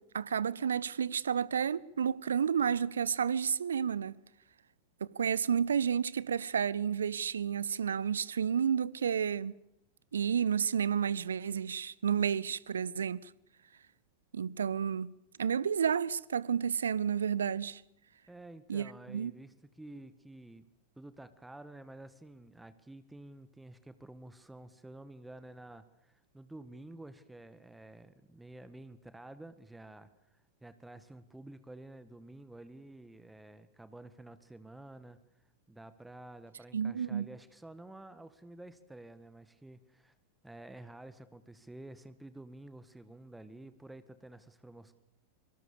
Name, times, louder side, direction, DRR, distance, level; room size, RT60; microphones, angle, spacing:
voice 1, 0.0-4.2 5.1-9.6 10.1-13.3 14.3-15.1 15.4-17.8 18.7-19.3 36.7-37.3, right 7 dB, 70° right, 0.9 m, -31 dB
voice 2, 18.3-20.6 21.0-35.2 35.7-40.1 40.4-44.9, right 1 dB, 5° right, 1.7 m, -51 dB
25.5 x 24.0 x 7.0 m
figure-of-eight pair, 90°, 0 cm